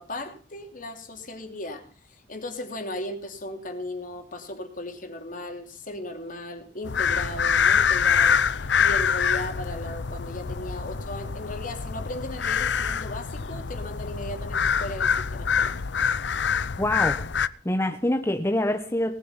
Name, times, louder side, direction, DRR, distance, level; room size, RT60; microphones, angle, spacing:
voice 1, 0.0-15.8, left 1 dB, 50° left, 5 dB, 3.1 m, -36 dB
sound 1, 6.8-17.5, left 7 dB, 75° left, 0.7 m, -25 dB
voice 2, 16.8-17.3 17.6-19.1, left 1 dB, 15° left, 6 dB, 1.2 m, -25 dB
19.0 x 9.4 x 5.6 m, 0.40 s
head